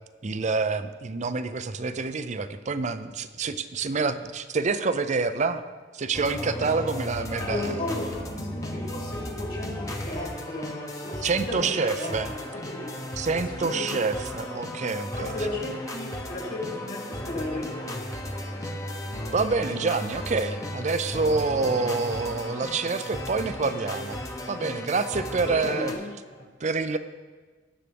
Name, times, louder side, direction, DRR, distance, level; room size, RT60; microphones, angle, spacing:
voice 1, 0.2-5.6 5.9-7.8 11.2-12.3 13.2-15.3 19.3-24.2 24.5-25.9 26.6-27.0, right 4 dB, 40° right, 11 dB, 0.5 m, -27 dB
sound 1, 6.1-25.9, left 1 dB, 15° left, 1.0 m, -35 dB
voice 2, 7.4-12.4 12.7-14.0 15.1-18.0 25.4-26.1 26.4-26.5, left 1 dB, 45° left, -1 dB, 2.5 m, -34 dB
18.5 x 7.4 x 3.5 m, 1.4 s
head